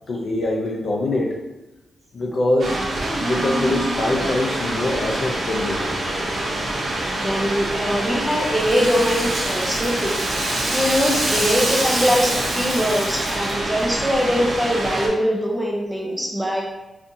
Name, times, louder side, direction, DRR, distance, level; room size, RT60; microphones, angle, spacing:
voice 1, 0.1-1.4 2.1-2.8 3.2-6.2, left 2 dB, 50° left, 0 dB, 0.6 m, -23 dB
sound 1, 2.6-15.1, right 1 dB, 50° right, 0.7 m, -26 dB
voice 2, 7.1-16.6, equal, 5° right, -2 dB, 0.5 m, -22 dB
Rattle (instrument), 7.6-13.9, right 1 dB, 80° right, 1.1 m, -27 dB
4.2 x 2.4 x 2.6 m, 1.0 s
wide cardioid pair, 160°, 0 cm